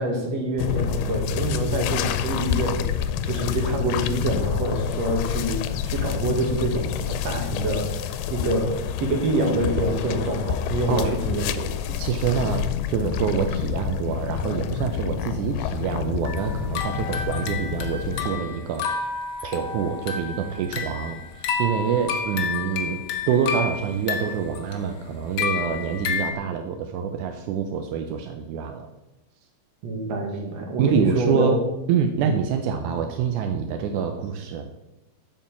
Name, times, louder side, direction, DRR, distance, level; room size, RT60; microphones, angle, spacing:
voice 1, 0.0-2.9 3.2-11.7 29.8-31.5 32.2-32.4, right 1 dB, 50° right, 2 dB, 2.7 m, -26 dB
sound 1, 0.6-18.3, left 9 dB, 90° left, 2.6 m, -28 dB
voice 2, 11.9-18.9 19.4-28.9 30.8-31.6 31.9-34.7, right 7 dB, 75° right, 6 dB, 1.8 m, -26 dB
sound 2, 16.2-26.3, left 6 dB, 75° left, 1.4 m, -30 dB
8.8 x 6.8 x 7.2 m, 0.97 s
omnidirectional pair, 4.3 m